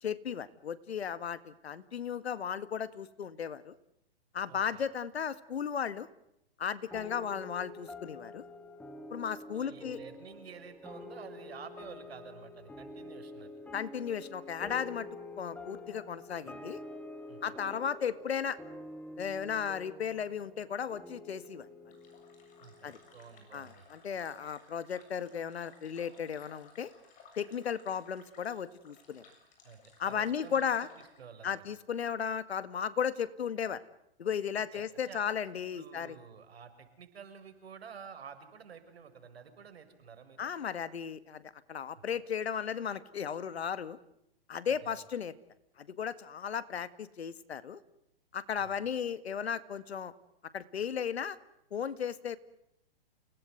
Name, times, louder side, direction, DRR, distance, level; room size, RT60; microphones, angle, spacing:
voice 1, 0.0-3.7 4.3-6.1 6.6-8.4 9.1-10.0 13.7-15.1 15.4-16.8 17.4-18.6 19.2-21.7 22.8-23.0 23.5-26.9 27.4-29.2 30.0-30.9 31.4-33.8 34.2-36.2 40.4-41.4 41.7-44.0 44.5-45.3 45.8-47.8 48.3-50.1 50.5-51.4 51.7-52.4, left 7 dB, 80° left, 15 dB, 2.0 m, -35 dB
voice 2, 4.5-4.8 9.5-13.5 17.3-17.6 22.6-23.9 29.6-30.9 31.2-31.6 34.7-35.2 35.7-40.5 44.6-45.0 48.6-48.8, right 6 dB, 75° right, 9 dB, 6.4 m, -50 dB
sound 1, 6.9-23.7, left 2 dB, 5° left, 2.2 m, -47 dB
sound 2, 21.9-31.2, left 5 dB, 25° left, 7.2 m, -59 dB
29.5 x 19.5 x 9.4 m, 0.82 s
hypercardioid pair, 140°, 31 cm